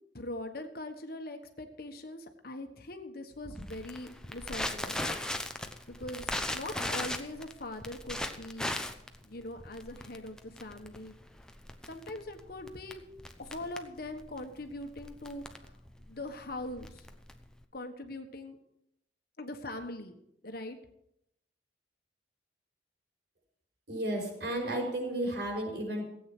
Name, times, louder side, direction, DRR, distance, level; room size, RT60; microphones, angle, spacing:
voice 1, 0.1-5.2 5.9-8.8 9.2-11.1 11.9-13.0 13.4-15.7 16.1-17.1 17.7-18.6 19.4-20.1 20.4-20.8, left 1 dB, 55° left, 6 dB, 1.4 m, -42 dB
Crackle, 3.4-17.6, left 1 dB, 5° left, 0.8 m, -38 dB
voice 2, 23.9-26.0, right 1 dB, 60° right, -1 dB, 5.7 m, -33 dB
16.0 x 8.7 x 6.0 m, 0.78 s
head